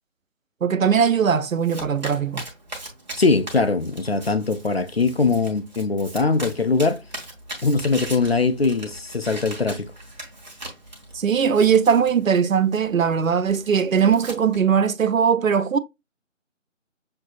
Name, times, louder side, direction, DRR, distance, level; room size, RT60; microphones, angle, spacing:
voice 1, 0.6-2.4 11.1-15.8, right 7 dB, 85° right, 0.6 m, -20 dB
Domestic sounds home sounds, 1.0-14.6, right 1 dB, 35° right, 1.2 m, -40 dB
voice 2, 3.2-7.0 7.6-9.9, left 4 dB, 55° left, 0.4 m, -21 dB
6.5 x 2.7 x 2.3 m
figure-of-eight pair, 160°, 39 cm